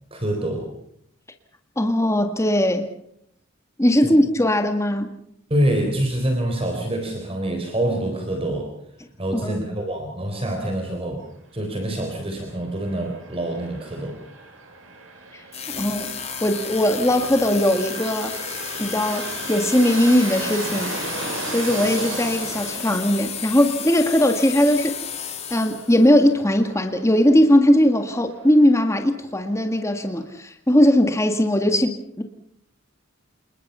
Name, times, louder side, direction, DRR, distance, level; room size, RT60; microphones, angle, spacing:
voice 1, 0.1-0.7 4.0-4.1 5.5-8.7 9.2-11.2 11.5-14.2, right 1 dB, 30° right, 3 dB, 4.0 m, -26 dB
voice 2, 1.8-2.9 3.8-5.2 9.3-9.6 15.3-15.4 15.8-16.1 16.4-18.4 18.8-20.9 21.5-25.0 25.5-32.2, left 1 dB, 15° left, 5 dB, 1.7 m, -19 dB
sound 1, 12.7-30.3, right 3 dB, 80° right, 6.7 m, -37 dB
sound 2, 15.5-26.1, left 7 dB, 35° left, 3.2 m, -33 dB
28.0 x 21.0 x 5.6 m, 0.71 s
head